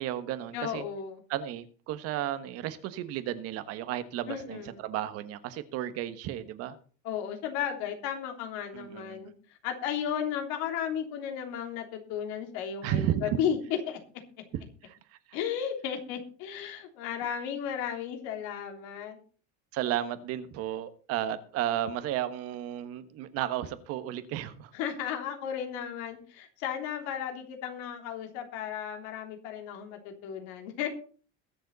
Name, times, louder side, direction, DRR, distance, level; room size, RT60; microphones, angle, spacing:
voice 1, 0.0-0.8 1.3-6.8 8.7-9.3 12.8-13.4 14.8-15.0 15.3-15.4 19.7-24.7, right 12 dB, 50° right, 1.3 m, -33 dB
voice 2, 0.5-1.2 4.3-4.8 7.0-9.3 9.6-13.6 13.9-14.0 15.3-19.2 24.7-30.9, left 8 dB, 65° left, 3.4 m, -34 dB
21.5 x 7.4 x 4.1 m
cardioid pair, 165°, 31 cm